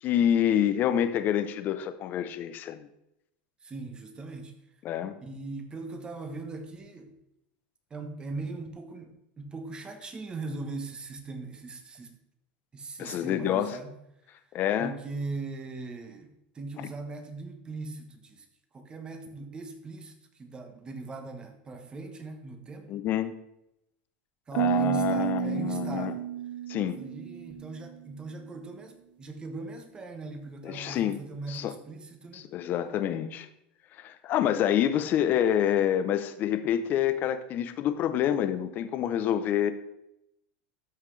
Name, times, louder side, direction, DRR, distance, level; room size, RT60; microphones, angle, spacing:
voice 1, 0.0-2.9 4.8-5.1 13.0-13.8 14.5-14.9 22.9-23.3 24.5-26.1 26.7-27.0 30.6-31.2 31.5-31.7 32.3-33.5 34.0-39.7, left 10 dB, 40° left, 11 dB, 0.7 m, -27 dB
voice 2, 3.6-4.5 5.2-7.2 7.9-12.2 12.7-14.0 14.2-14.3 14.8-18.5 18.7-22.9 24.5-26.3 26.8-32.5, right 3 dB, 20° right, 6 dB, 1.2 m, -40 dB
sound 1, 24.6-28.0, right 12 dB, 80° right, 0.6 m, -31 dB
13.0 x 5.7 x 3.3 m, 0.83 s
supercardioid pair, 140°, 5 cm